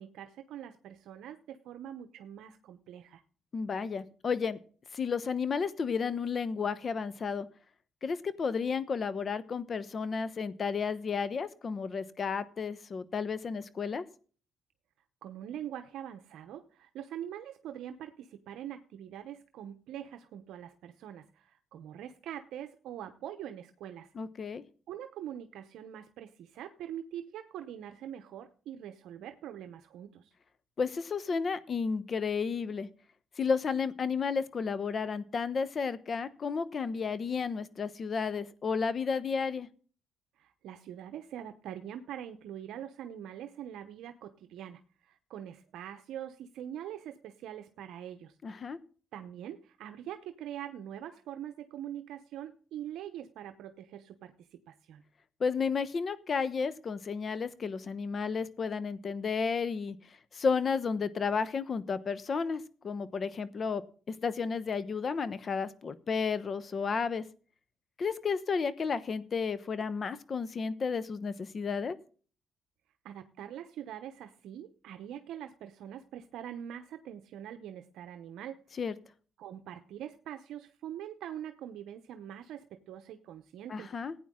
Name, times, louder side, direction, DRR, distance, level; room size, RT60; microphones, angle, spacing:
voice 1, 0.0-3.2 15.2-24.1 24.9-30.3 40.4-48.4 49.1-55.0 73.0-78.6 79.4-83.9, right 10 dB, 85° right, 8 dB, 0.8 m, -43 dB
voice 2, 3.5-4.6 4.9-7.5 8.0-14.0 24.1-24.6 30.8-32.9 33.4-39.7 48.4-48.8 55.4-60.0 60.3-63.8 64.2-67.2 68.0-72.0 78.8-78.9 83.7-84.1, left 5 dB, 45° left, 15 dB, 1.0 m, -32 dB
16.0 x 9.2 x 3.7 m, 0.41 s
cardioid pair, 90°, 0 cm